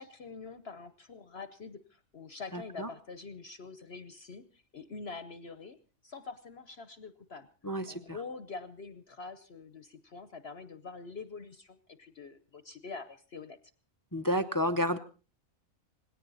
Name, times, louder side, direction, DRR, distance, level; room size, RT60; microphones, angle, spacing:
voice 1, 0.0-5.8 6.0-7.5 7.9-13.6, left 4 dB, 50° left, 11 dB, 1.1 m, -45 dB
voice 2, 2.5-2.9 7.6-8.2 14.1-15.0, equal, 20° left, 11 dB, 0.6 m, -31 dB
19.5 x 17.5 x 4.1 m, 0.36 s
omnidirectional pair, 1.4 m